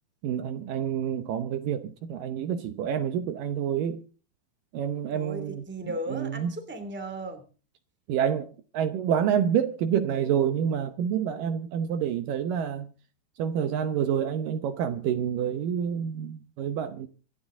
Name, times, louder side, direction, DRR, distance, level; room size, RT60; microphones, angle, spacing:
voice 1, 0.2-4.0 4.7-5.6 6.1-6.5 8.1-12.9 13.4-17.1, right 8 dB, 70° right, 2.3 m, -28 dB
voice 2, 5.1-7.4, right 1 dB, 5° right, 1.8 m, -36 dB
26.0 x 10.0 x 3.7 m
omnidirectional pair, 4.5 m